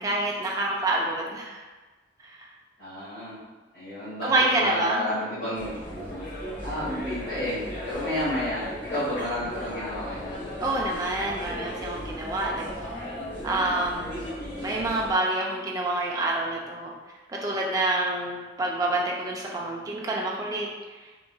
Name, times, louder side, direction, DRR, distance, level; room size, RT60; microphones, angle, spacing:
voice 1, 0.0-1.6 2.2-2.3 4.2-5.0 10.6-12.7 13.4-14.3 14.6-16.9 17.3-20.7, right 2 dB, 20° right, -2 dB, 0.3 m, -27 dB
voice 2, 2.8-3.4 3.7-6.0 6.6-10.5, left 1 dB, 65° left, -15 dB, 1.3 m, -31 dB
sound 1, 5.5-15.1, equal, 45° left, 1.2 m, -36 dB
3.7 x 2.3 x 2.2 m, 1.2 s
head